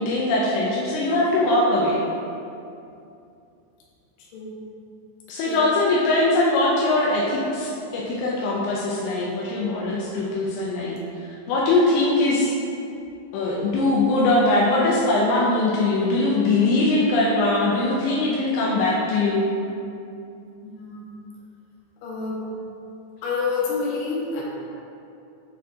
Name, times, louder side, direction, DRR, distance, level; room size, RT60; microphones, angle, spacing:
voice 1, 0.0-2.0 5.3-11.0 11.5-12.5 13.3-19.5, left 2 dB, 85° left, -5 dB, 2.2 m, -21 dB
voice 2, 4.2-4.5 5.5-5.6 20.6-21.1 22.0-22.4 23.2-24.4, left 4 dB, 70° left, -5 dB, 2.2 m, -28 dB
8.7 x 4.2 x 2.7 m, 2.6 s
omnidirectional pair, 5.3 m